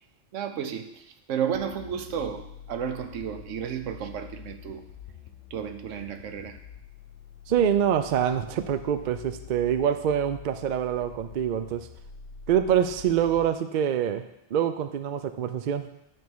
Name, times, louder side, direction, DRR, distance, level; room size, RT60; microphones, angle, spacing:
voice 1, 0.3-4.8 5.5-6.6, right 8 dB, 85° right, 8 dB, 1.0 m, -32 dB
sound 1, 1.5-13.5, left 8 dB, 85° left, 1.1 m, -46 dB
voice 2, 7.5-11.9 12.5-14.2 14.5-15.9, right 9 dB, 55° right, 10 dB, 0.5 m, -25 dB
9.1 x 3.6 x 6.1 m, 0.84 s
omnidirectional pair, 1.2 m